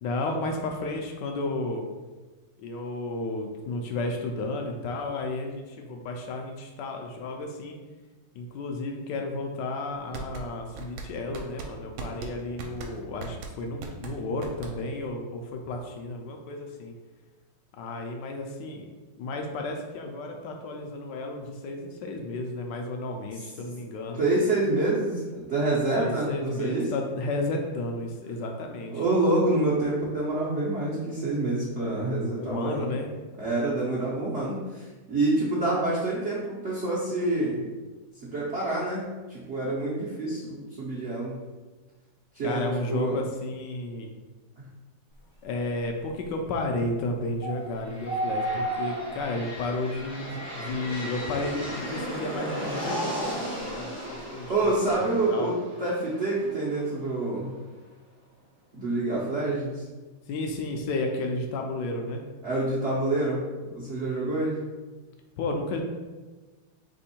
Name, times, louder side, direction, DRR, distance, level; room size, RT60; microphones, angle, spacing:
voice 1, 0.0-1.8 2.6-7.8 8.3-16.9 17.7-18.8 19.2-24.2 26.0-29.0 32.3-33.1 42.4-44.2 45.4-55.5 60.3-62.2 65.4-65.8, left 2 dB, 75° left, 3 dB, 1.1 m, -32 dB
sound 1, 9.9-15.1, right 4 dB, 75° right, 1.4 m, -39 dB
voice 2, 24.2-26.9 28.9-32.9 33.4-37.6 38.2-41.3 42.3-43.2 44.6-44.7 54.5-57.5 58.7-59.8 62.4-63.4 63.7-64.6, right 2 dB, 60° right, -8 dB, 0.7 m, -27 dB
sound 2, 47.4-47.7 48.1-49.4 49.9-50.0 50.7-51.3 52.4-53.8 54.5-54.7, right 1 dB, 45° left, 0.6 m, -32 dB
sound 3, 47.7-57.5, equal, 15° right, 0.5 m, -37 dB
3.5 x 3.0 x 4.3 m, 1.2 s
omnidirectional pair, 2.2 m